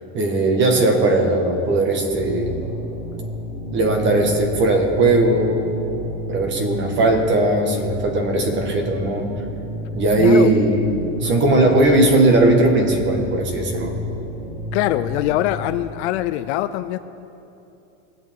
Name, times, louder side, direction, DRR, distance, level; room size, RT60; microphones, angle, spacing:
voice 1, 0.1-2.5 3.7-5.7 6.3-9.3 9.9-10.9 11.2-13.9, right 2 dB, 30° right, 3 dB, 1.6 m, -18 dB
sound 1, 2.1-15.6, left 2 dB, 10° left, 2.5 m, -31 dB
voice 2, 10.2-10.5 11.2-11.7 14.7-17.0, left 14 dB, 55° left, 12 dB, 0.5 m, -23 dB
21.0 x 7.9 x 3.7 m, 2.9 s
supercardioid pair, 160°, 40 cm